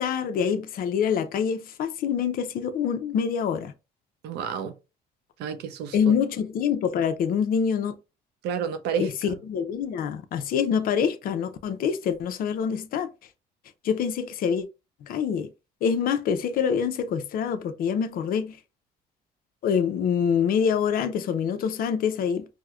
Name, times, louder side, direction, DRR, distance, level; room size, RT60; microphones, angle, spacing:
voice 1, 0.0-3.7 5.9-8.0 9.0-13.1 13.8-14.7 15.1-15.5 15.8-18.6 19.6-22.5, left 7 dB, 60° left, 0.5 m, -25 dB
voice 2, 4.2-4.7 5.4-6.1 8.4-9.4, right 7 dB, 80° right, 0.6 m, -31 dB
4.6 x 2.1 x 2.3 m
cardioid pair, 110°, 17 cm